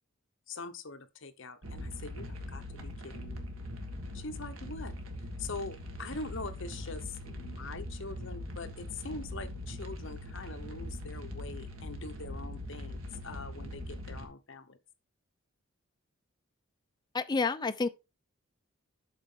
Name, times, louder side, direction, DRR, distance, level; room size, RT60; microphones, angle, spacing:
voice 1, 0.5-3.5 4.1-4.9 5.4-14.8, left 3 dB, 60° left, 1.0 m, -43 dB
sound 1, 1.6-14.3, left 1 dB, 75° right, 1.7 m, -41 dB
voice 2, 17.1-17.9, left 4 dB, 20° left, 0.6 m, -29 dB
8.1 x 5.8 x 3.8 m
head